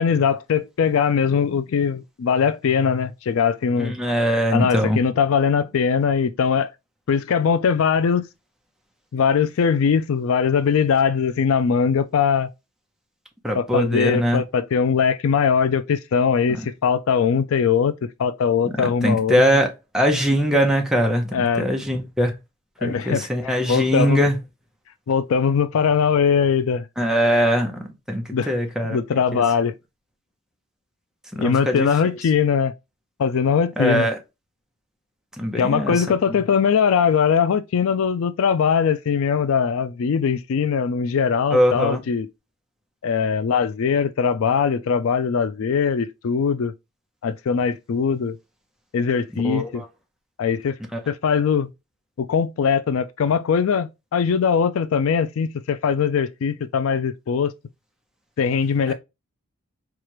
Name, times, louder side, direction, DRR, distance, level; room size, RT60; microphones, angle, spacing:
voice 1, 0.0-3.9 4.5-6.7 7.1-8.3 9.1-12.5 13.5-17.9 18.2-19.4 21.3-21.7 22.8-24.2 25.1-26.8 28.3-28.5 28.9-29.7 31.4-32.7 33.2-34.1 35.6-42.3 43.0-46.7 47.2-48.4 48.9-49.8 50.4-50.8 51.1-51.7 52.2-57.5 58.4-58.9, left 6 dB, 70° left, 0.4 m, -21 dB
voice 2, 3.8-5.0 13.4-14.4 16.5-16.6 18.6-18.7 19.0-19.7 19.9-22.3 22.8-24.4 27.0-29.0 29.3-29.4 31.3-31.9 33.8-34.2 35.4-36.0 41.5-42.0 49.3-49.9 50.9-51.0 58.9-59.0, equal, 5° right, 0.8 m, -21 dB
4.6 x 2.4 x 3.0 m
head